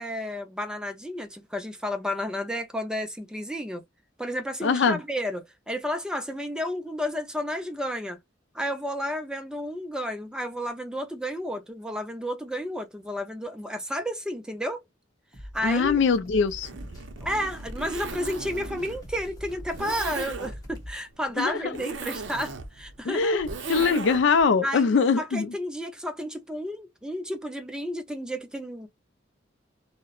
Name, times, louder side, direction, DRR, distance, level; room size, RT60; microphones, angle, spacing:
voice 1, 0.0-3.8 4.2-8.2 8.5-14.8 15.5-16.0 17.2-23.5 24.6-28.9, equal, 5° right, 0.4 m, -32 dB
voice 2, 4.6-5.0 15.6-16.7 21.4-21.7 23.0-25.5, left 5 dB, 65° left, 0.4 m, -22 dB
sound 1, 15.3-20.9, equal, 20° left, 0.9 m, -43 dB
Zipper (clothing), 16.5-24.4, right 4 dB, 70° right, 0.5 m, -37 dB
2.8 x 2.0 x 2.3 m
head